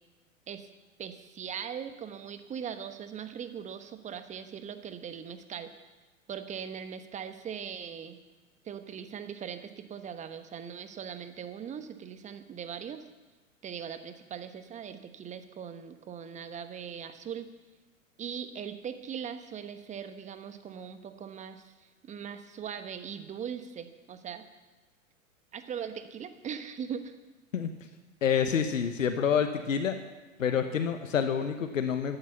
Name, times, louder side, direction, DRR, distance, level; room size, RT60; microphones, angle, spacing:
voice 1, 1.0-5.7 6.3-8.2 8.6-13.0 13.6-17.5 18.2-24.4 25.5-27.1, right 8 dB, 15° right, 9 dB, 1.1 m, -40 dB
voice 2, 28.2-30.0 30.4-32.2, left 7 dB, 70° left, 8 dB, 1.2 m, -27 dB
13.0 x 12.5 x 7.0 m, 1.2 s
figure-of-eight pair, 100°, 40 cm